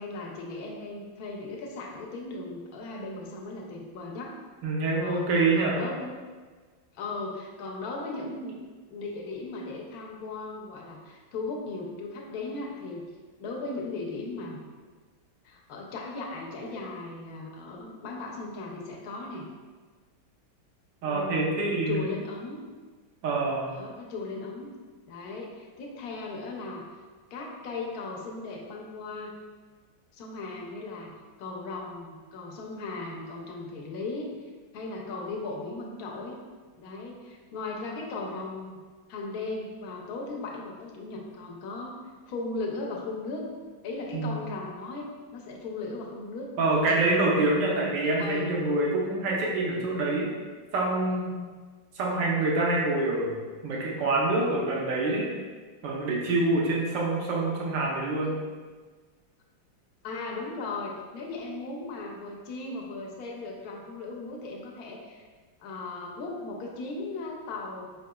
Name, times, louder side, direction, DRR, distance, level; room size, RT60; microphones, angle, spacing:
voice 1, 0.0-4.3 5.0-5.3 5.5-6.1 6.9-8.6 8.9-13.0 13.4-14.6 15.4-19.4 21.0-22.6 23.7-24.7 25.1-26.8 27.3-29.3 30.1-31.1 31.4-34.3 34.7-36.4 36.8-38.8 39.1-42.0 42.3-43.5 43.8-46.5 48.2-48.5 60.0-65.2 65.6-67.9, left 3 dB, 70° left, -1 dB, 0.9 m, -37 dB
voice 2, 4.6-5.8 21.0-22.0 23.2-23.8 44.1-44.3 46.6-50.3 50.7-51.3 51.9-53.4 53.6-55.3 55.8-58.4, right 2 dB, 65° right, -3 dB, 1.5 m, -26 dB
5.2 x 4.0 x 2.2 m, 1.4 s
omnidirectional pair, 2.2 m